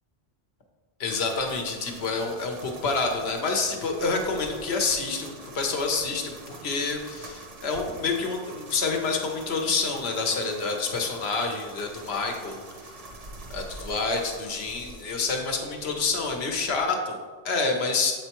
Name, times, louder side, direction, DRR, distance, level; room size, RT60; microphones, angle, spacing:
voice 1, 1.0-12.9 13.5-18.1, left 4 dB, 75° left, 3 dB, 1.1 m, -28 dB
sound 1, 1.0-16.8, right 2 dB, 45° right, 0.6 m, -45 dB
7.4 x 4.4 x 2.9 m, 1.5 s
omnidirectional pair, 1.1 m